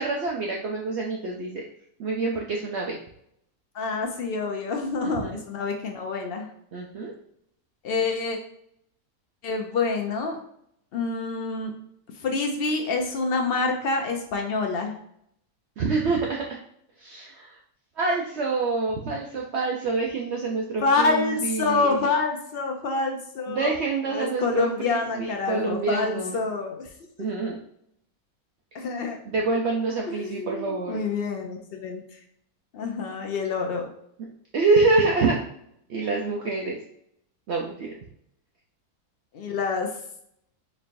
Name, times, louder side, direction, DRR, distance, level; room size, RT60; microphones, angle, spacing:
voice 1, 0.0-1.6 2.0-3.0 5.0-5.4 6.7-7.1 15.8-16.6 17.0-17.6 18.0-22.1 23.5-26.4 27.2-27.6 28.7-28.8 29.2-31.1 34.5-35.4 35.9-36.8 37.5-37.9, right 3 dB, 65° right, -1 dB, 0.7 m, -26 dB
voice 2, 3.7-6.5 7.8-8.4 9.4-10.4 10.9-11.7 12.2-15.0 20.8-23.7 24.1-26.9 28.7-29.2 30.1-32.0 32.7-33.9 39.3-39.9, left 4 dB, 65° left, 2 dB, 0.6 m, -27 dB
4.1 x 3.2 x 2.6 m, 0.72 s
omnidirectional pair, 1.6 m